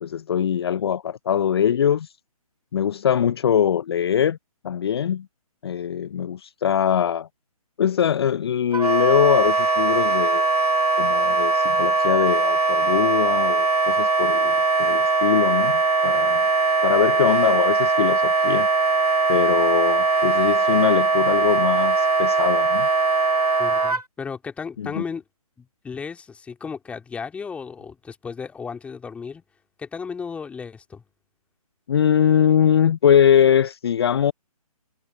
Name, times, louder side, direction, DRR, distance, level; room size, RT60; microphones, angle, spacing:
voice 1, 0.0-2.1 2.7-4.4 4.6-5.3 5.6-7.3 7.8-10.5 11.0-16.4 16.8-18.7 19.3-22.9 24.8-25.0 31.9-34.3, left 9 dB, 40° left, 0.7 m, -22 dB
Wind instrument woodwind instrument, 8.7-24.0, right 3 dB, 85° right, 2.3 m, -20 dB
voice 2, 23.6-25.2 25.6-29.4 29.8-31.0, left 5 dB, 5° left, 2.7 m, -34 dB
figure-of-eight pair, 140°, 19 cm